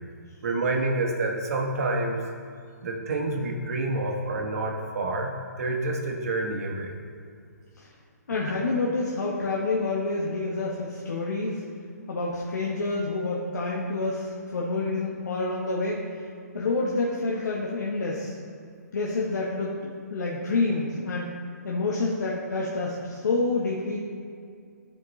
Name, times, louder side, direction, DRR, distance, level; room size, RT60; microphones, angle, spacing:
voice 1, 0.4-2.2 2.8-6.9 8.5-8.6, right 2 dB, 60° right, 1 dB, 1.4 m, -28 dB
voice 2, 8.3-11.6 12.1-16.1 16.5-18.4 18.9-19.8 20.1-21.4 21.6-24.0, left 3 dB, 80° left, -4 dB, 1.1 m, -28 dB
13.5 x 5.1 x 3.2 m, 2.3 s
hypercardioid pair, 155°, 9 cm